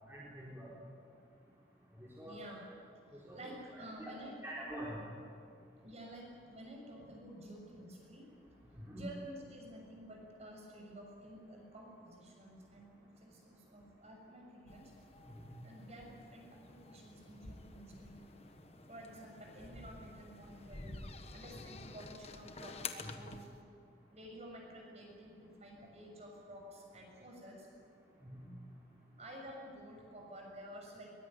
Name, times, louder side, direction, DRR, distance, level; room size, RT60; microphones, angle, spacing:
voice 1, 0.1-0.7 2.0-2.4 3.3-4.1 4.4-5.0 8.8-9.0 15.3-15.4 23.0-23.1 28.2-28.5, right 1 dB, 15° right, -7 dB, 4.1 m, -46 dB
voice 2, 2.2-2.6 3.1-4.3 5.8-8.3 8.7-14.9 15.6-18.2 18.9-21.0 21.3-23.5 24.1-27.7 29.2-31.1, right 1 dB, 35° right, 0 dB, 6.7 m, -51 dB
sound 1, 14.7-23.5, left 4 dB, 35° left, 1.3 m, -50 dB
22.5 x 20.5 x 9.8 m, 2.3 s
head